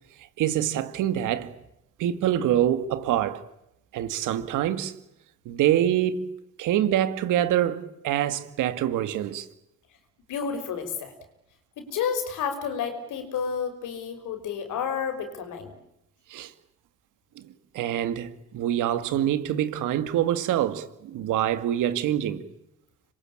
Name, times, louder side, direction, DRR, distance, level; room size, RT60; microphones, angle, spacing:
voice 1, 0.4-1.5 2.0-3.4 3.9-4.9 5.5-6.3 6.6-9.5 16.3-16.5 17.4-17.5 17.7-22.4, right 11 dB, 90° right, 2.2 m, -25 dB
voice 2, 10.3-11.1 11.8-15.8, left 6 dB, 85° left, 5.4 m, -30 dB
27.0 x 22.5 x 8.8 m
cardioid pair, 90°, 30 cm